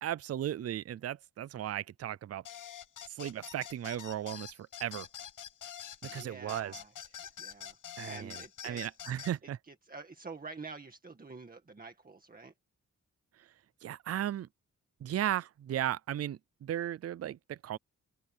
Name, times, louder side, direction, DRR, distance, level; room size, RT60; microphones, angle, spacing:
voice 1, 0.0-2.4 3.1-5.1 6.0-6.8 8.0-8.3 8.6-9.6 13.8-14.5 15.0-17.8, right 11 dB, 55° right, 0.4 m, -36 dB
sound 1, 2.4-9.3, left 9 dB, 85° left, 1.1 m, -46 dB
voice 2, 5.7-6.9 7.4-7.8 8.0-8.8 9.4-12.5, right 4 dB, 30° right, 1.9 m, -48 dB
open air
wide cardioid pair, 180°, 31 cm